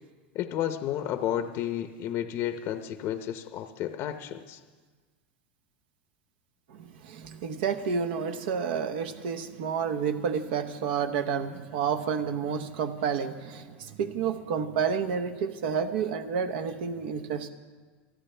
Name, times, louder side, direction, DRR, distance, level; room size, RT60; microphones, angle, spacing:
voice 1, 0.3-4.6, left 11 dB, 45° left, 8 dB, 0.7 m, -32 dB
voice 2, 6.7-17.5, right 6 dB, 75° right, 9 dB, 0.9 m, -30 dB
28.0 x 9.9 x 3.3 m, 1.4 s
supercardioid pair, 125°, 6 cm